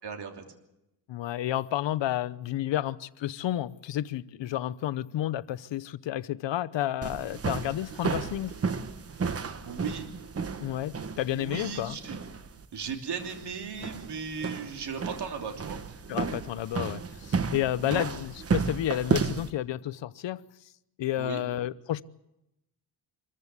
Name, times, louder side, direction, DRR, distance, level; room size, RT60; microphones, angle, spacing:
voice 1, 0.0-0.4 9.6-10.1 11.3-12.1 12.7-15.8 17.8-18.0 21.2-21.4, right 6 dB, 60° right, 3.1 m, -36 dB
voice 2, 1.1-8.5 10.6-12.0 16.1-20.4 21.0-22.0, left 12 dB, 75° left, 0.8 m, -31 dB
sound 1, 7.0-19.5, right 5 dB, 35° right, 1.1 m, -33 dB
25.5 x 14.5 x 8.2 m
wide cardioid pair, 140°, 44 cm